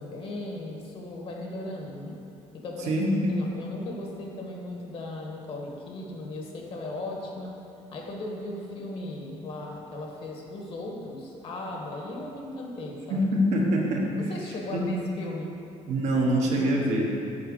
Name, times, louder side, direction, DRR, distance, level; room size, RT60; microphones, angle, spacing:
voice 1, 0.0-2.2 2.5-3.0 3.3-7.5 7.9-13.3 14.3-15.5, left 2 dB, 50° left, -1 dB, 1.4 m, -37 dB
voice 2, 2.8-3.4 13.1-14.1 14.7-14.9 15.9-17.3, equal, 70° right, -1 dB, 1.2 m, -25 dB
7.7 x 4.2 x 6.6 m, 2.7 s
cardioid pair, 150°, 12 cm